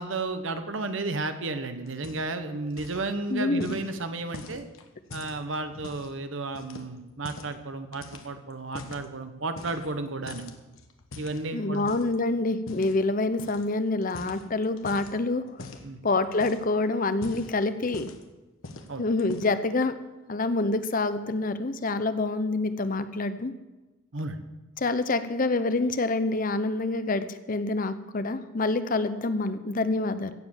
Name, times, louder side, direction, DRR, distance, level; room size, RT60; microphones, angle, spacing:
voice 1, 0.0-4.6 5.1-10.5 11.2-11.9 15.8-16.0 18.9-19.0 24.1-24.4, right 3 dB, 65° right, 9 dB, 1.2 m, -33 dB
sound 1, 1.9-2.4 2.7-3.1 3.6-6.1 6.5-7.6 7.9-9.1 9.5-10.0 10.3-12.2 12.7-13.0 13.4-13.7 14.0-15.1 15.6-15.9 16.3-16.7 17.1-18.3 18.6-18.9 19.2-19.7, left 2 dB, 80° left, 1.3 m, -43 dB
voice 2, 3.3-3.8 11.5-15.8 16.0-18.1 19.0-19.9 20.3-23.5 24.8-30.3, left 2 dB, 40° left, 11 dB, 0.7 m, -27 dB
16.0 x 7.6 x 7.3 m, 1.1 s
head